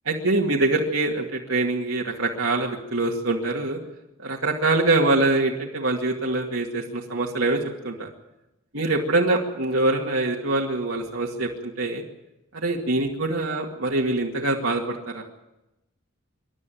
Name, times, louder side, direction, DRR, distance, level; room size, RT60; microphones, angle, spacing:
voice 1, 0.1-3.8 4.2-8.1 8.7-12.0 12.5-15.2, right 2 dB, 70° right, -2 dB, 2.3 m, -24 dB
26.5 x 12.0 x 9.3 m, 0.93 s
head